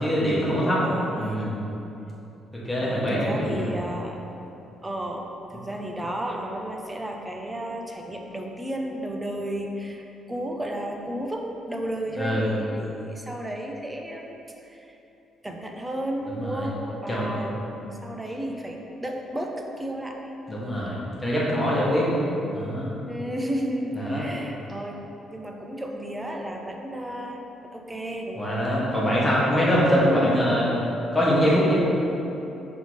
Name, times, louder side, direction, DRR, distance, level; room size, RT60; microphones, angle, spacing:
voice 1, 0.0-0.8 1.2-1.5 2.6-3.7 12.2-12.5 16.4-16.7 17.1-17.4 20.5-22.1 22.5-22.9 24.0-24.3 28.4-30.8 31.1-31.8, equal, 5° left, -7 dB, 1.2 m, -23 dB
voice 2, 0.8-1.4 2.8-4.3 4.8-10.0 10.3-14.4 14.6-15.0 15.4-20.3 22.0-22.6 23.1-25.0 25.3-28.6, right 1 dB, 10° right, 1 dB, 0.5 m, -33 dB
5.9 x 3.6 x 4.7 m, 3.0 s
cardioid pair, 160°, 0 cm